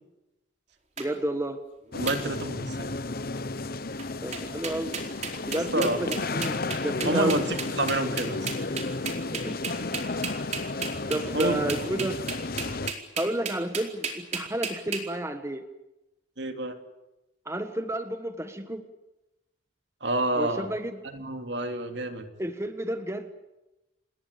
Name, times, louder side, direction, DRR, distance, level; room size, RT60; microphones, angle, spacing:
voice 1, 1.0-1.6 4.2-4.9 5.5-6.6 6.8-7.4 9.1-9.6 11.1-12.2 13.2-15.6 17.4-18.8 20.3-21.0 22.4-23.3, right 1 dB, 15° right, 8 dB, 1.4 m, -31 dB
sound 1, 1.0-1.1 2.1-2.2 2.7-3.0 4.0-4.1 4.3-15.0, right 5 dB, 35° right, 4.5 m, -33 dB
sound 2, 1.9-12.9, left 3 dB, 50° left, 1.0 m, -33 dB
voice 2, 1.9-2.9 5.5-6.0 7.0-8.5 11.3-11.7 16.4-16.8 20.0-20.7 21.0-22.3, right 1 dB, 65° right, 6 dB, 3.1 m, -28 dB
28.5 x 21.0 x 8.5 m, 0.97 s
head